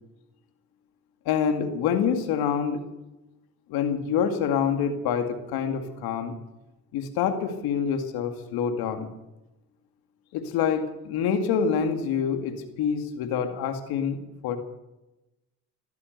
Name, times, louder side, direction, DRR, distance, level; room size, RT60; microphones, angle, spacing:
voice 1, 1.3-2.8 3.7-6.3 6.9-9.1 10.3-14.6, left 7 dB, 85° left, 7 dB, 2.3 m, -26 dB
16.5 x 13.0 x 6.7 m, 0.96 s
supercardioid pair, 60°, 36 cm